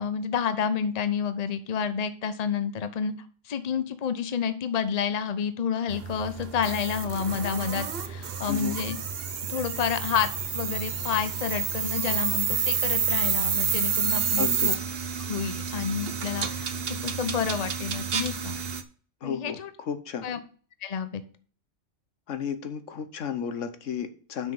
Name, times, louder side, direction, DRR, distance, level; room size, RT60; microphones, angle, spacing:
voice 1, 0.0-3.1 3.5-9.0 9.5-14.8 15.3-16.7 17.0-18.6 19.2-19.7 20.2-20.4 20.8-21.2, left 7 dB, 35° left, 11 dB, 0.8 m, -29 dB
sound 1, 5.9-18.8, right 7 dB, 55° right, 1.0 m, -29 dB
voice 2, 14.4-14.7 19.2-20.3 22.3-24.5, left 7 dB, 75° left, 10 dB, 1.3 m, -33 dB
6.3 x 5.8 x 7.1 m, 0.42 s
omnidirectional pair, 1.3 m